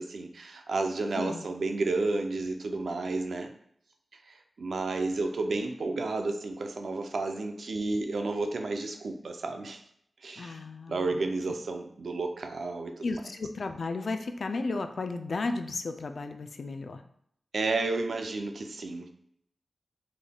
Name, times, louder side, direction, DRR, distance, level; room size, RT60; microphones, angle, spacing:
voice 1, 0.0-3.5 4.3-9.8 10.2-10.6 10.9-13.0 17.5-19.1, right 3 dB, 70° right, 5 dB, 0.4 m, -31 dB
voice 2, 10.4-11.2 13.0-17.0, left 3 dB, 60° left, 7 dB, 0.3 m, -34 dB
3.8 x 3.4 x 2.2 m, 0.69 s
wide cardioid pair, 115°, 0 cm